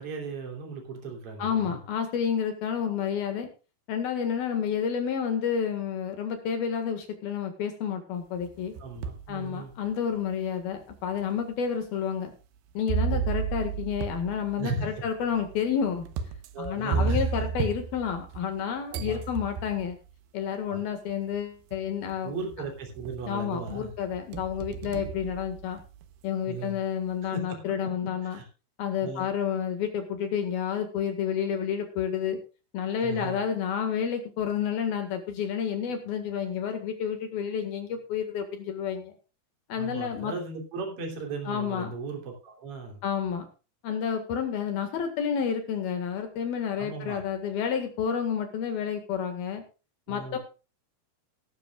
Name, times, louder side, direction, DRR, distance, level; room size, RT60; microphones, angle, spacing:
voice 1, 0.0-1.8 8.8-9.7 13.0-13.3 14.6-15.0 16.5-17.3 18.9-19.2 20.7-20.9 22.2-23.9 26.5-26.8 27.2-28.5 29.0-29.3 33.0-33.4 39.8-43.0 46.8-47.2 50.1-50.4, right 3 dB, 35° right, 2 dB, 3.8 m, -37 dB
voice 2, 1.4-3.5 3.9-8.7 9.3-12.3 12.8-16.1 16.6-20.0 20.3-22.3 23.3-25.8 26.2-28.4 28.8-32.4 32.7-39.1 39.7-40.3 41.5-41.9 43.0-43.5 43.8-49.6 50.1-50.4, left 7 dB, 65° left, 7 dB, 3.5 m, -30 dB
sound 1, 8.4-9.3 9.9-10.0 10.9-11.0 12.9-18.6 18.9-19.9 21.1-21.2 21.7-22.1 22.5-23.3 23.7-26.0, right 6 dB, 75° right, 3.0 m, -33 dB
17.5 x 12.5 x 2.4 m, 0.33 s
omnidirectional pair, 4.8 m